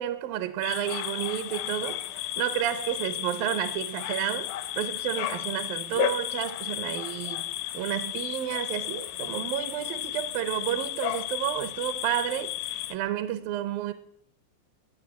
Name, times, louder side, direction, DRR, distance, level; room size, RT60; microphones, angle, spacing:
voice 1, 0.0-7.5 7.7-13.9, right 12 dB, 75° right, 2.2 m, -31 dB
sound 1, 0.6-13.0, left 15 dB, 85° left, 3.0 m, -33 dB
20.0 x 6.7 x 9.7 m
omnidirectional pair, 5.1 m